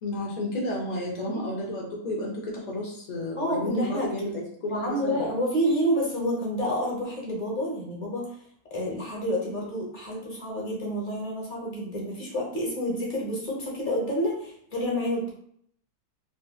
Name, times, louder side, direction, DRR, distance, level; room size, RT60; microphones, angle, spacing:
voice 1, 0.0-5.2, left 1 dB, 60° left, -2 dB, 0.4 m, -32 dB
voice 2, 3.4-4.1 4.7-8.2 8.7-15.3, equal, 35° left, -3 dB, 1.0 m, -29 dB
3.9 x 2.5 x 2.3 m, 0.64 s
omnidirectional pair, 1.6 m